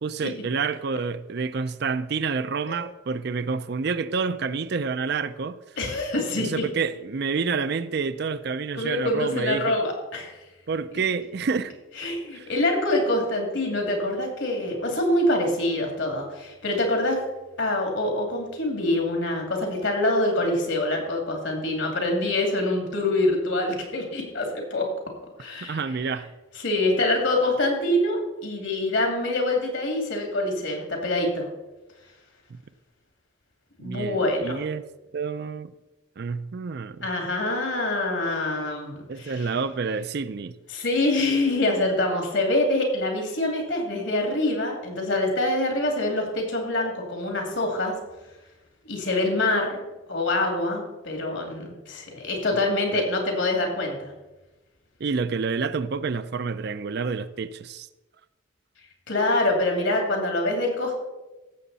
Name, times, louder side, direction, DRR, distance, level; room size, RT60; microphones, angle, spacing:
voice 1, 0.0-5.6 6.4-9.7 10.7-11.7 12.3-12.5 25.6-26.3 32.5-32.6 33.8-34.9 35.1-35.7 36.2-37.1 39.1-40.6 52.9-53.1 55.0-57.9, right 5 dB, 55° right, 0.4 m, -28 dB
voice 2, 5.8-6.6 8.7-10.3 12.0-17.2 17.6-24.9 25.4-25.8 26.6-31.5 33.8-34.6 37.0-39.5 40.7-47.9 48.8-49.8 50.1-54.1 59.1-60.9, left 1 dB, 70° left, 2.5 m, -25 dB
15.5 x 7.2 x 4.1 m
head